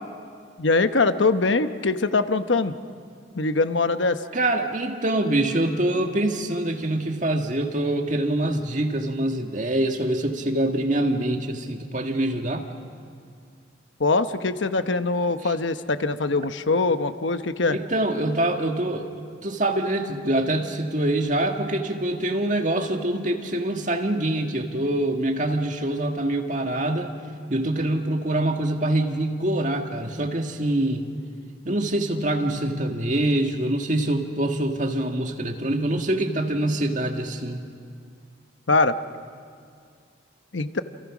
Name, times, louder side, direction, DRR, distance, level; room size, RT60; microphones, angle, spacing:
voice 1, 0.6-2.7 3.4-4.2 14.0-17.8 38.7-39.0 40.5-40.8, left 3 dB, 80° left, 10 dB, 1.0 m, -22 dB
voice 2, 4.3-12.7 15.4-15.5 17.7-19.1 19.4-27.1 27.5-31.1 31.6-37.7, right 1 dB, 40° right, 4 dB, 1.8 m, -25 dB
29.0 x 28.0 x 6.1 m, 2.2 s
head